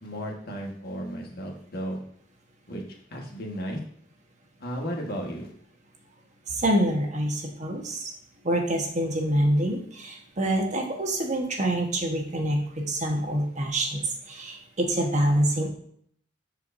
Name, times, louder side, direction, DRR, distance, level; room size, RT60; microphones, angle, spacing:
voice 1, 0.0-2.0 2.7-2.8 3.1-3.8 4.6-5.5, equal, 50° left, 0 dB, 1.5 m, -34 dB
voice 2, 6.5-8.1 8.4-15.7, right 1 dB, 40° right, 2 dB, 1.2 m, -26 dB
13.0 x 4.7 x 2.6 m, 0.63 s
head